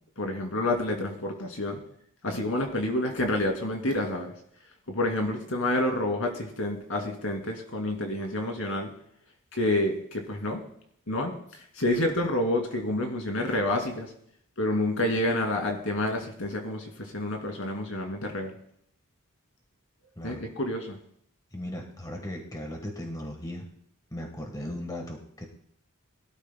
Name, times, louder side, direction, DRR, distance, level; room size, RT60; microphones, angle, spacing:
voice 1, 0.2-1.8 2.2-4.3 4.9-8.9 9.5-10.6 11.1-11.3 11.7-14.1 14.6-18.5 20.2-21.0, left 1 dB, 65° left, 3 dB, 2.4 m, -28 dB
voice 2, 21.5-23.7 24.1-25.5, left 1 dB, 15° left, 2 dB, 1.3 m, -37 dB
21.5 x 12.5 x 2.2 m, 0.67 s
head